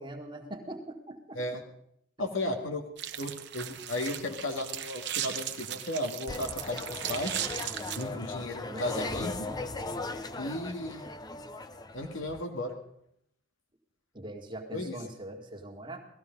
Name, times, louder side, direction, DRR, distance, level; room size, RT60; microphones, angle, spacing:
voice 1, 0.0-1.4 8.1-9.7 14.1-16.0, right 1 dB, 25° right, 2 dB, 1.8 m, -42 dB
voice 2, 2.2-2.8 3.2-7.4 7.9-9.3 10.4-11.1 11.9-12.7 14.7-15.0, left 1 dB, 85° left, 4 dB, 2.1 m, -34 dB
sound 1, 3.0-8.0, right 11 dB, 60° right, 0.9 m, -37 dB
sound 2, 6.3-12.4, left 3 dB, 20° left, 0.6 m, -38 dB
18.0 x 14.5 x 5.3 m, 0.71 s
head